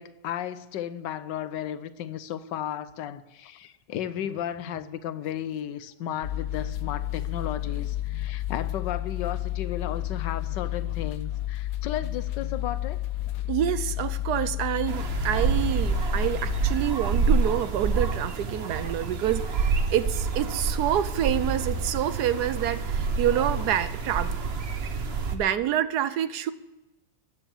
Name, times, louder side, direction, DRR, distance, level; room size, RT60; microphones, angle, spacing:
voice 1, 0.0-13.0, left 10 dB, 85° left, 1.4 m, -34 dB
Telephone, 4.1-4.9 6.1-6.8 8.0-8.8 10.0-10.7 11.9-12.7 13.9-14.6 15.8-16.5, right 2 dB, 25° right, 6.3 m, -50 dB
sound 1, 6.2-16.7, left 14 dB, 65° left, 1.0 m, -31 dB
voice 2, 13.5-24.4 25.3-26.5, right 11 dB, 70° right, 1.2 m, -27 dB
sound 2, 14.9-25.3, right 4 dB, 40° right, 1.1 m, -27 dB
14.5 x 10.0 x 7.2 m
omnidirectional pair, 1.9 m